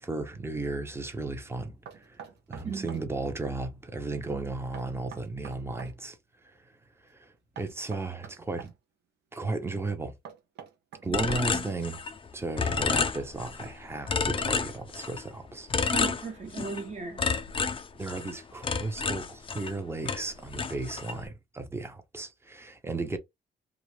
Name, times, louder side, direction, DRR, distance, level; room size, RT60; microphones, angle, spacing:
voice 1, 0.0-6.2 6.4-6.7 7.1-8.7 9.3-10.2 11.0-12.0 12.3-15.7 18.0-23.2, right 3 dB, 15° right, 0.7 m, -35 dB
Knock, 1.9-3.1 4.7-6.0 7.6-8.7 10.3-11.7, right 8 dB, 75° right, 0.7 m, -46 dB
sound 1, 11.1-12.3 12.6-13.7 14.1-15.3 15.7-16.8 17.2-19.8 20.1-21.2, left 5 dB, 30° left, 0.4 m, -30 dB
voice 2, 11.1-11.7 15.9-17.2, right 4 dB, 40° right, 1.0 m, -37 dB
2.4 x 2.1 x 3.2 m
cardioid pair, 75°, 18 cm